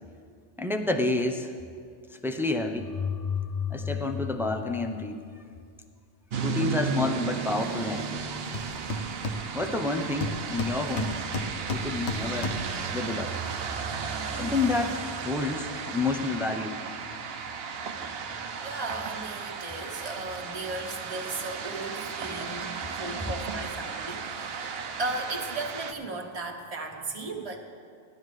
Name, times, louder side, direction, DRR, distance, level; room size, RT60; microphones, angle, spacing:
voice 1, 0.6-1.5 2.1-2.9 3.7-5.3 6.4-8.3 9.5-11.2 11.7-12.6 12.9-13.4 14.3-16.8, left 3 dB, 5° right, 5 dB, 0.5 m, -29 dB
sound 1, 2.8-5.7, left 7 dB, 40° left, 0.7 m, -33 dB
sound 2, 6.3-25.9, right 5 dB, 65° right, 0.9 m, -34 dB
Hammer, 8.2-8.3 8.5-9.8 10.2-12.8, left 2 dB, 70° left, 1.2 m, -33 dB
voice 2, 18.6-27.6, right 2 dB, 35° right, 1 dB, 1.2 m, -36 dB
18.5 x 12.0 x 3.2 m, 2.2 s
omnidirectional pair, 1.2 m